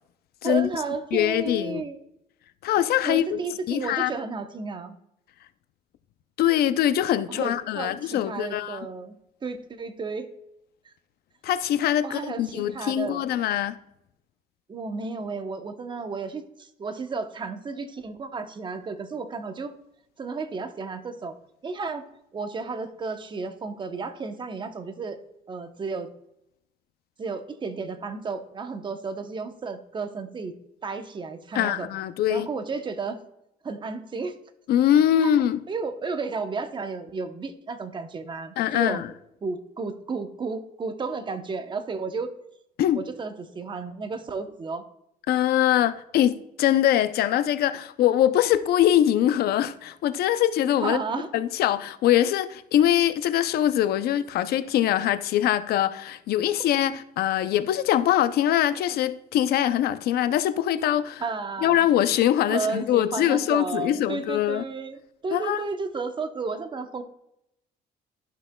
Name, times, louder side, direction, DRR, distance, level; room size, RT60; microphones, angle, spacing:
voice 1, 0.4-2.0 3.0-5.0 7.3-10.3 10.8-10.9 12.0-13.3 14.7-19.7 20.2-21.4 21.6-22.0 22.3-25.2 25.5-26.1 27.2-30.5 30.8-31.9 32.3-33.2 33.6-34.3 35.2-35.3 35.7-39.0 39.4-42.3 42.9-44.8 50.8-51.3 61.2-61.9 62.5-67.0, right 4 dB, 30° right, 0.8 m, -33 dB
voice 2, 1.1-1.8 2.6-3.4 3.7-4.1 6.4-8.9 11.4-13.8 31.5-32.5 34.7-35.6 38.6-39.1 42.8-43.0 45.3-51.0 51.3-61.2 61.6-64.6 65.3-65.6, left 11 dB, 65° left, 0.5 m, -23 dB
12.5 x 5.8 x 2.3 m
cardioid pair, 110°, 17 cm